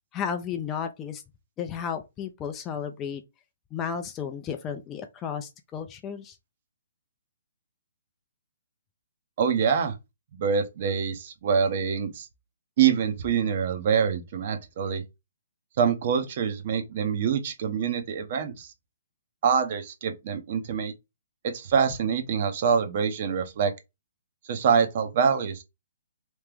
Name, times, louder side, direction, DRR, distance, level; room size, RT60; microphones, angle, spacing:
voice 1, 0.1-1.2 1.6-3.2 3.7-6.4, left 7 dB, 20° left, 0.5 m, -33 dB
voice 2, 9.4-9.9 10.4-12.3 12.8-15.0 15.8-18.7 19.4-20.9 21.4-23.7 24.4-25.6, right 7 dB, 45° right, 0.8 m, -25 dB
3.2 x 3.1 x 3.6 m
figure-of-eight pair, 125°, 0 cm